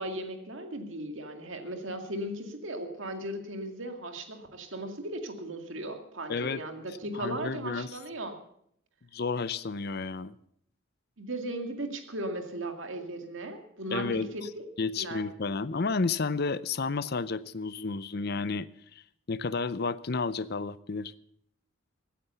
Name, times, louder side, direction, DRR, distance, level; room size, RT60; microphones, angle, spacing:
voice 1, 0.0-8.3 11.2-14.7 15.0-15.2, right 1 dB, 65° right, 5 dB, 2.1 m, -37 dB
voice 2, 6.3-6.6 7.1-7.9 9.1-10.3 13.9-14.3 14.8-18.7 19.3-21.1, left 4 dB, 50° left, 17 dB, 0.6 m, -31 dB
16.0 x 9.5 x 6.9 m, 0.68 s
head